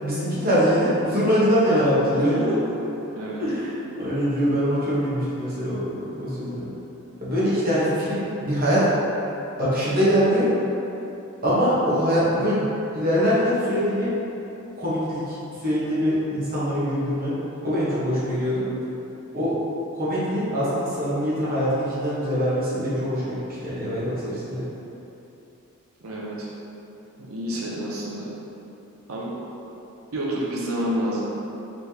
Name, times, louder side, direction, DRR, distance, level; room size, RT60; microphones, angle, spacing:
voice 1, 0.0-2.5 3.4-3.7 4.0-6.7 7.2-8.9 9.6-10.5 11.4-14.1 14.8-17.4 17.6-18.6 19.3-19.5 19.9-24.6, equal, 45° right, -10 dB, 1.1 m, -23 dB
voice 2, 2.1-2.8 3.1-3.4 26.0-26.5 27.2-28.3 29.1-29.4 30.1-31.3, equal, 75° right, -5 dB, 0.7 m, -29 dB
4.2 x 3.3 x 2.8 m, 2.9 s
head